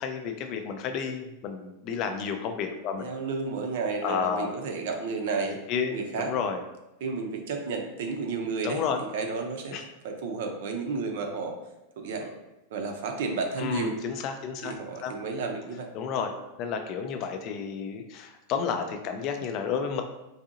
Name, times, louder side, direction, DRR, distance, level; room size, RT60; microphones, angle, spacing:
voice 1, 0.0-3.1 4.0-4.5 5.4-6.6 8.6-9.0 9.7-9.8 13.6-14.7 15.0-15.1 15.9-16.3 16.6-20.0, left 6 dB, 35° left, 5 dB, 0.4 m, -31 dB
voice 2, 3.0-5.6 5.9-6.3 7.0-8.8 9.1-9.8 10.0-11.6 12.0-12.3 12.7-14.0 14.6-15.9, right 4 dB, 65° right, 3 dB, 0.5 m, -32 dB
3.9 x 2.7 x 2.5 m, 0.95 s
supercardioid pair, 165°, 0 cm